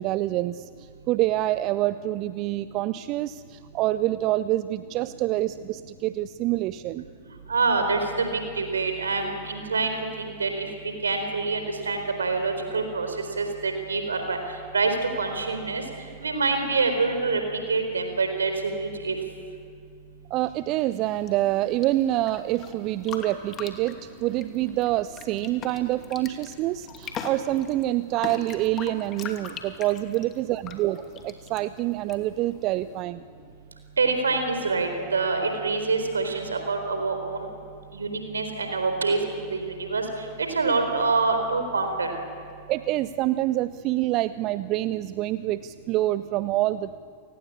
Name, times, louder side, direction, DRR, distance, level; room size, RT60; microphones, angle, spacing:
voice 1, 0.0-7.1 20.3-33.2 42.7-47.0, right 15 dB, 40° right, 15 dB, 0.6 m, -26 dB
voice 2, 7.5-8.3 8.6-10.7 11.0-13.1 13.4-14.4 14.7-14.9 15.2-15.8 16.2-17.4 17.7-19.2 34.0-37.5 37.9-40.0 40.5-42.1, right 4 dB, 75° right, 6 dB, 4.1 m, -26 dB
sound 1, 20.9-33.0, left 7 dB, 30° left, 2.7 m, -42 dB
29.5 x 19.0 x 8.6 m, 2.2 s
figure-of-eight pair, 90°, 0 cm